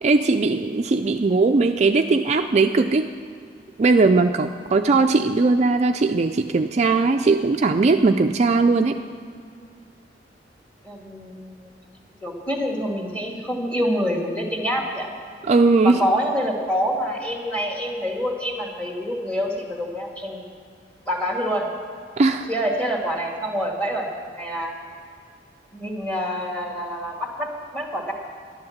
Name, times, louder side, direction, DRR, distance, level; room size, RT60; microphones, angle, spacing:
voice 1, 0.0-3.1 3.8-9.0 15.5-16.0 22.2-22.5, right 3 dB, 40° right, 6 dB, 0.4 m, -19 dB
voice 2, 10.8-11.7 12.2-15.1 15.8-20.4 21.1-21.6 22.5-24.1 24.4-24.7 25.7-28.1, equal, 10° left, 0 dB, 2.0 m, -26 dB
11.0 x 10.5 x 7.2 m, 2.3 s
head